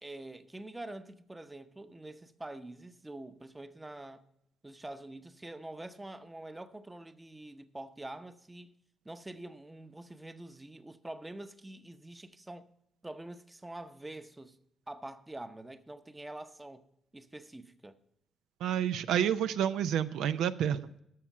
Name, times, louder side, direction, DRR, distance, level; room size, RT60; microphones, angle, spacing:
voice 1, 0.0-4.2 4.6-8.7 9.0-12.7 13.0-14.6 14.9-16.8 17.1-18.0, right 1 dB, 15° right, 0.7 m, -46 dB
voice 2, 18.6-21.0, right 9 dB, 80° right, 0.4 m, -29 dB
13.0 x 6.1 x 5.5 m
cardioid pair, 90°, 0 cm